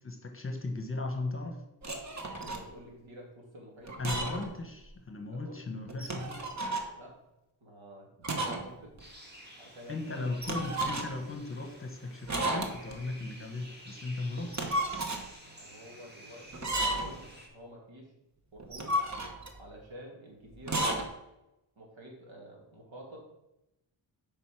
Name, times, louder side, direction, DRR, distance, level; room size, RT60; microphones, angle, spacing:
voice 1, 0.0-1.6 4.0-6.5 9.9-14.8, left 2 dB, 30° left, 4 dB, 1.1 m, -37 dB
sound 1, 1.8-2.7 3.8-4.5 4.8-4.9 5.9-6.9 8.2-8.7 9.0-9.1 10.4-11.3 12.3-13.0 14.4-15.3 16.5-17.2 18.6-19.6 20.6-21.1, right 1 dB, 35° right, 1.1 m, -33 dB
voice 2, 2.3-3.9 5.3-5.6 6.9-7.1 7.6-8.9 9.6-10.3 15.4-18.1 18.5-19.0 19.6-21.0 21.8-23.2, equal, 75° right, -1 dB, 2.5 m, -49 dB
sound 2, 9.0-17.5, equal, 20° right, 1.8 m, -52 dB
8.1 x 5.1 x 6.0 m, 0.91 s
wide cardioid pair, 150°, 46 cm